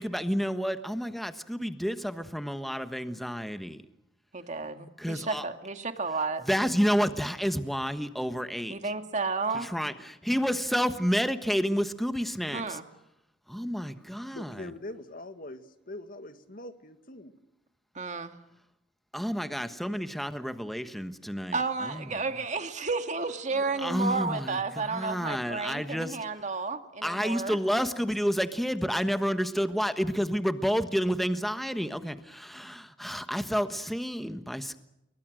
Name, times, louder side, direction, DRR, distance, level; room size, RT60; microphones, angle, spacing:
voice 1, 0.0-3.8 5.0-5.4 6.4-8.8 9.5-9.9 10.3-12.8 13.5-14.7 19.1-22.1 23.8-26.2 27.0-34.8, equal, ahead, 9 dB, 1.3 m, -30 dB
voice 2, 4.3-6.4 8.7-9.7 12.5-12.8 17.9-18.4 21.5-27.6, right 4 dB, 40° right, 7 dB, 2.1 m, -32 dB
voice 3, 14.3-17.3 23.5-23.8, left 2 dB, 50° left, 9 dB, 2.0 m, -43 dB
28.5 x 23.0 x 6.4 m, 0.87 s
head